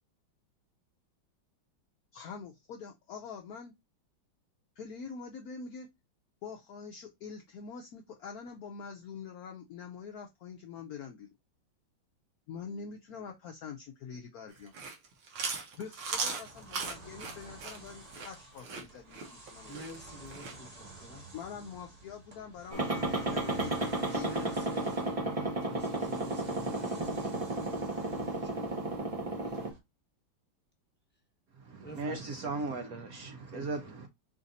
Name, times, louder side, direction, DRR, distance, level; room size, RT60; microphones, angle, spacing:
voice 1, 2.1-3.7 4.8-5.9 6.4-11.3 12.5-14.7 15.8-19.8 21.3-24.6, left 6 dB, 75° left, 0.8 m, -45 dB
Chewing mastication, 14.6-20.6, right 4 dB, 80° right, 2.0 m, -38 dB
sound 1, 16.4-29.8, right 3 dB, 25° right, 1.0 m, -51 dB
voice 2, 19.6-21.3 24.0-27.7 28.3-28.8 29.4-29.6 31.8-32.6 33.5-34.0, left 1 dB, 10° left, 0.5 m, -49 dB
sound 2, 22.7-29.7, right 2 dB, 45° right, 0.4 m, -33 dB
voice 3, 31.7-34.1, right 3 dB, 65° right, 0.9 m, -37 dB
5.0 x 2.5 x 4.0 m
omnidirectional pair, 2.2 m